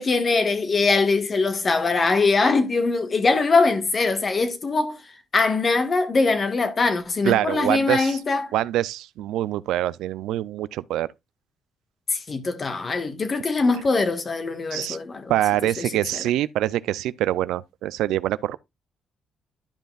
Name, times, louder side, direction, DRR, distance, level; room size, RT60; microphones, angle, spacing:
voice 1, 0.0-5.0 5.3-8.5 12.1-15.3 15.8-16.2, left 3 dB, 35° left, 1.5 m, -22 dB
voice 2, 7.2-8.2 8.5-11.1 14.7-15.0 15.3-18.6, right 13 dB, 90° right, 0.4 m, -25 dB
12.0 x 5.3 x 2.3 m
cardioid pair, 90°, 0 cm